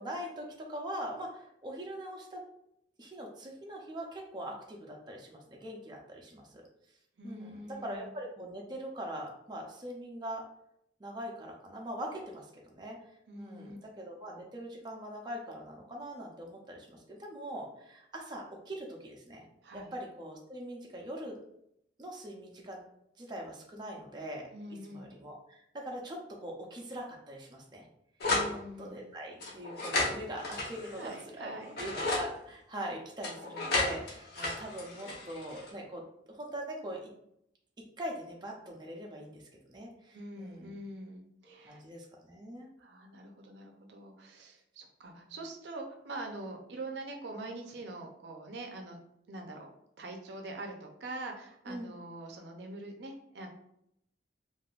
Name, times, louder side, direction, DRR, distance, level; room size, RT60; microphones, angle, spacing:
voice 1, 0.0-2.4 3.0-6.7 7.2-10.4 11.0-13.0 13.4-19.4 19.7-21.4 22.0-22.8 23.2-24.5 24.9-27.9 28.5-37.1 38.0-39.4 39.7-40.7 41.4-42.7 45.2-45.3 51.7-51.9, right 1 dB, 25° right, -1 dB, 0.5 m, -42 dB
voice 2, 7.2-8.1 13.3-13.8 19.6-19.9 24.5-25.1 28.2-29.1 30.8-31.8 40.1-41.8 42.8-49.0 49.3-49.7 50.0-53.5, right 2 dB, 75° right, 3 dB, 0.5 m, -44 dB
sound 1, 28.2-28.5 29.4-31.2 31.6-32.3 33.2-35.7, left 2 dB, 65° left, 0.8 m, -33 dB
3.5 x 2.5 x 2.4 m, 0.74 s
head